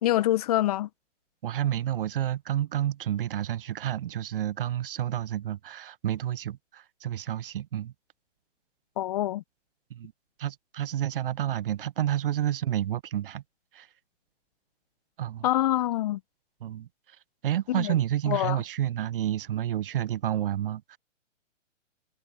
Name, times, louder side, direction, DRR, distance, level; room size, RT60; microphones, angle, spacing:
voice 1, 0.0-0.9 9.0-9.4 15.4-16.2 17.7-17.9 18.3-18.6, left 14 dB, 30° left, 0.7 m, -25 dB
voice 2, 1.4-7.9 9.9-10.1 10.4-13.4 13.7-13.9 15.2-15.5 16.6-16.9 17.4-21.0, right 11 dB, 45° right, 0.8 m, -30 dB
figure-of-eight pair, 130°, 37 cm